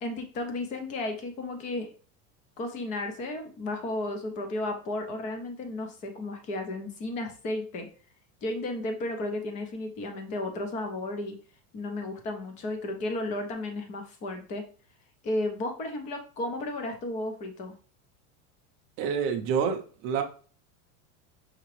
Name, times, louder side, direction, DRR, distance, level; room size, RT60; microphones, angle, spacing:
voice 1, 0.0-1.9 2.6-7.9 8.4-11.4 11.7-14.6 15.2-17.7, left 2 dB, 20° left, 6 dB, 0.3 m, -33 dB
voice 2, 19.0-20.2, right 6 dB, 35° right, 5 dB, 0.5 m, -28 dB
5.9 x 2.8 x 3.0 m, 0.40 s
supercardioid pair, 170°, 40 cm